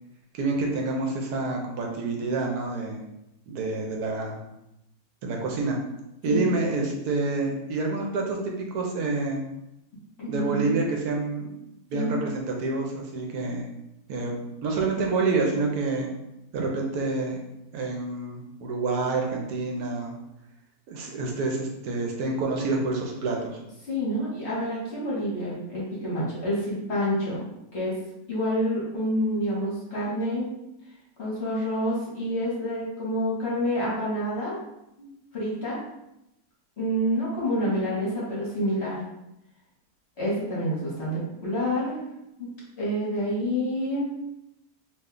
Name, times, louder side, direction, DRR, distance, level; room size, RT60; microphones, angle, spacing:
voice 1, 0.3-3.0 3.5-4.4 5.2-5.8 6.2-9.4 10.3-11.5 11.9-13.7 14.1-16.1 16.5-17.4 17.7-20.2 20.9-23.6, right 3 dB, 75° right, 0 dB, 1.1 m, -28 dB
voice 2, 10.2-10.8 11.9-12.1 23.8-27.4 27.7-27.9 28.3-30.5 31.2-34.6 35.0-35.8 36.8-39.0 40.2-42.0 42.4-42.5 42.8-44.1, equal, 50° left, -6 dB, 1.1 m, -28 dB
2.7 x 2.2 x 3.6 m, 0.86 s
omnidirectional pair, 1.7 m